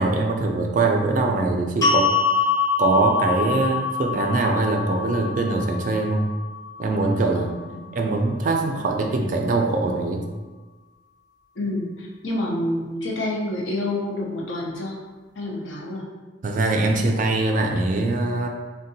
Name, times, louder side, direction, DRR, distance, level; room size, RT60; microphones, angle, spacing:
voice 1, 0.0-2.1 2.8-6.3 6.8-7.5 7.9-10.2 16.4-18.5, right 3 dB, 40° right, 2 dB, 0.3 m, -22 dB
sound 1, 1.8-8.0, left 5 dB, 20° left, 0.5 m, -25 dB
voice 2, 11.6-15.0 15.4-16.1, left 1 dB, 70° left, -2 dB, 0.7 m, -28 dB
3.6 x 2.2 x 2.7 m, 1.2 s
head